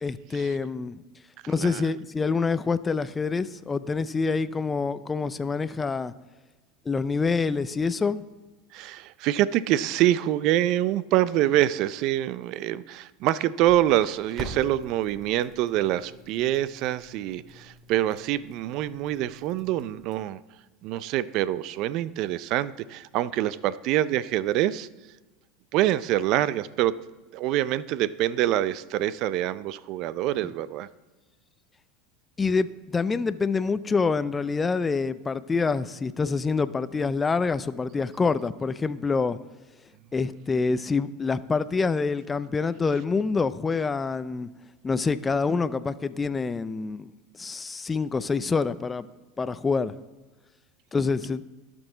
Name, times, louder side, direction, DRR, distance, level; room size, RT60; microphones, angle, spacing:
voice 1, 0.0-1.0 1.5-6.1 6.9-8.2 32.4-39.4 40.1-44.5 44.8-47.1 47.4-49.1 49.4-49.9 50.9-51.4, left 4 dB, 20° left, 15 dB, 0.4 m, -26 dB
voice 2, 1.4-1.9 8.7-20.4 20.8-24.9 25.7-27.0 27.3-30.9, right 13 dB, 55° right, 18 dB, 0.4 m, -25 dB
Crackle, 13.6-20.1, right 2 dB, 25° right, 2.7 m, -45 dB
18.0 x 6.1 x 3.9 m, 1.2 s
hypercardioid pair, 105°, 0 cm